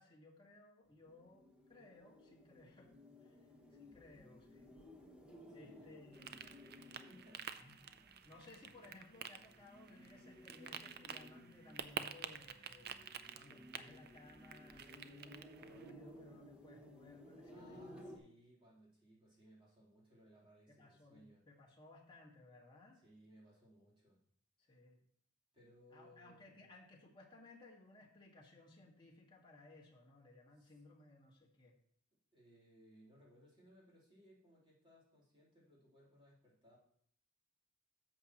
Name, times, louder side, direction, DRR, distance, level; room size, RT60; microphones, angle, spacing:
voice 1, 0.0-2.9 3.2-3.4 3.7-4.7 5.5-6.3 7.6-7.7 8.2-12.9 13.3-18.2 20.7-23.0 24.7-25.0 25.9-31.7, left 2 dB, 20° left, -3 dB, 1.8 m, -60 dB
sound 1, 1.0-18.2, equal, 5° right, 1.0 m, -59 dB
voice 2, 5.5-7.5 17.5-21.4 22.9-24.2 24.6-24.8 25.5-26.6 30.5-30.8 32.3-36.8, equal, 25° right, -6 dB, 3.7 m, -65 dB
sound 2, 6.1-15.9, right 7 dB, 45° right, 0.5 m, -50 dB
11.0 x 7.3 x 3.1 m, 0.65 s
head